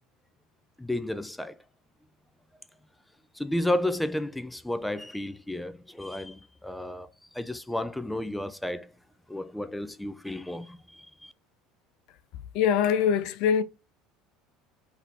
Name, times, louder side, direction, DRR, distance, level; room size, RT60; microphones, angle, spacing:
voice 1, 0.8-1.6 3.3-8.9 9.3-11.3, left 1 dB, 5° left, 0.5 m, -32 dB
voice 2, 12.5-13.6, left 8 dB, 65° left, 0.4 m, -23 dB
3.9 x 2.8 x 4.1 m
hypercardioid pair, 75°, 0 cm